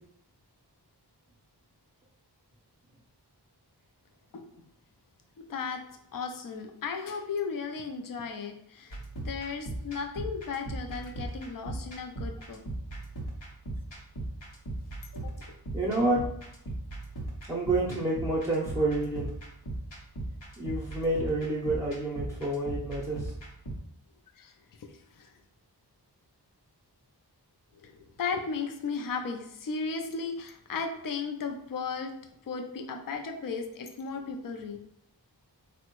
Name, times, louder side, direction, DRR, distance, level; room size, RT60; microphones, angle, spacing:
voice 1, 5.4-5.8 6.1-12.6 15.1-15.3 24.4-25.3 27.8-32.1 32.5-34.8, left 5 dB, 55° left, 4 dB, 0.5 m, -35 dB
sound 1, 8.9-23.7, right 2 dB, 80° left, 0.8 m, -38 dB
voice 2, 15.7-16.2 17.5-19.3 20.6-23.3, right 2 dB, 5° right, -6 dB, 0.6 m, -29 dB
3.5 x 2.1 x 2.9 m, 0.72 s
wide cardioid pair, 40°, 42 cm